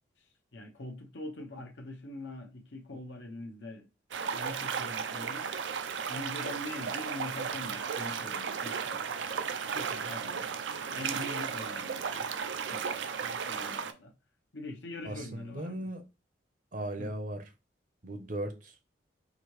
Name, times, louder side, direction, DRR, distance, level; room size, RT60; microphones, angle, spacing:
voice 1, 0.2-3.9 4.3-5.6 6.1-9.0 9.7-10.5 10.9-12.4 12.7-12.8 13.1-14.1 14.5-15.9 17.0-17.1, left 2 dB, 70° left, 0.8 m, -43 dB
sound 1, 4.1-13.9, right 6 dB, 75° right, 0.5 m, -35 dB
voice 2, 15.0-16.0 16.7-17.4 18.0-18.8, right 1 dB, 45° right, 0.7 m, -37 dB
4.9 x 2.7 x 3.1 m
head